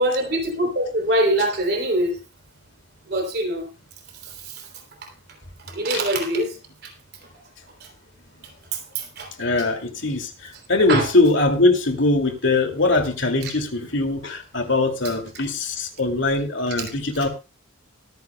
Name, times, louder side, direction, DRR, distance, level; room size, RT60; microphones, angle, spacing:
voice 1, 0.0-2.2 3.1-3.7 4.2-4.7 5.0-5.1 5.7-6.9 7.8-7.9 8.7-9.3 9.6-9.7 10.9-11.1 13.4-13.5 15.0-15.1 16.8-16.9, right 1 dB, 50° right, 3.3 m, -24 dB
voice 2, 9.4-10.3 10.7-17.3, left 2 dB, 65° left, 2.5 m, -21 dB
23.5 x 9.6 x 2.3 m
head